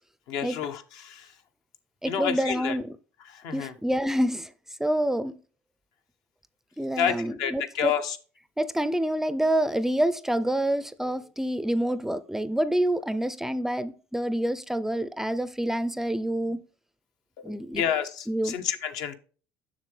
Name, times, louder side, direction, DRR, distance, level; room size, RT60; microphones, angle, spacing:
voice 1, 0.3-1.3 2.0-2.8 3.2-3.7 7.0-8.2 17.4-19.2, left 8 dB, 70° left, 0.9 m, -30 dB
voice 2, 2.0-2.9 3.5-4.5 4.8-5.4 6.8-7.9 8.6-16.6 17.4-17.8 18.3-18.5, right 1 dB, 5° right, 0.4 m, -27 dB
7.4 x 6.0 x 3.3 m
supercardioid pair, 95°, 7 cm